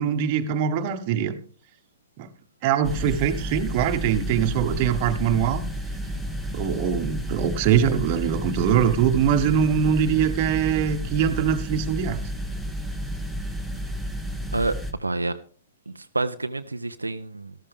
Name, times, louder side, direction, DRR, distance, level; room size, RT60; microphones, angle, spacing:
voice 1, 0.0-1.3 2.2-2.3 2.6-5.6 6.5-12.2, right 8 dB, 40° right, 8 dB, 1.2 m, -22 dB
sound 1, 2.8-14.9, equal, 5° left, 1.3 m, -31 dB
voice 2, 14.5-15.4 15.9-17.5, right 2 dB, 85° right, 8 dB, 0.6 m, -28 dB
13.5 x 13.0 x 3.5 m, 0.42 s
figure-of-eight pair, 115°, 0 cm